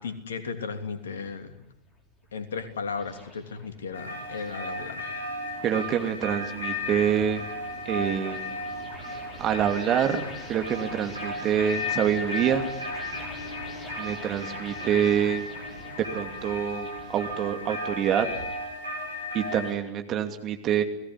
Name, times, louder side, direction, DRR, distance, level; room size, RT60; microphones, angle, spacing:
voice 1, 0.0-1.6 2.3-5.1, left 5 dB, 65° left, 7 dB, 3.1 m, -35 dB
sound 1, 1.3-19.9, left 2 dB, 20° left, 5.8 m, -47 dB
sound 2, 3.9-19.7, left 1 dB, 85° right, 7.3 m, -35 dB
voice 2, 5.6-7.4 7.8-8.5 9.4-12.7 14.0-15.5 16.0-18.3 19.3-20.8, right 9 dB, 30° right, 6 dB, 2.6 m, -26 dB
sound 3, 6.7-17.7, equal, 85° left, 3.8 m, -49 dB
29.5 x 19.0 x 9.8 m, 0.93 s
figure-of-eight pair, 90°, 0 cm